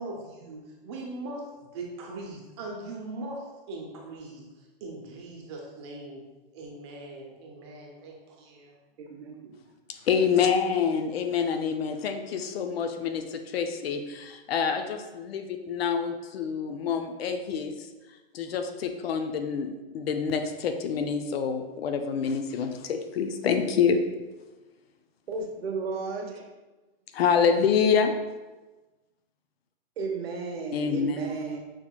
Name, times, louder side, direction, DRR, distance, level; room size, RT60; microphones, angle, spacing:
voice 1, 0.0-4.4 4.8-6.2 6.5-8.8, right 2 dB, 30° right, -1 dB, 0.6 m, -40 dB
voice 2, 9.0-9.5 25.3-26.5 30.0-31.6, right 4 dB, 85° right, 2 dB, 1.0 m, -33 dB
voice 3, 10.1-17.7 18.3-24.0 27.1-28.1 30.7-31.6, left 6 dB, 85° left, 6 dB, 0.5 m, -27 dB
6.2 x 2.9 x 2.2 m, 1.2 s
hypercardioid pair, 160°, 30 cm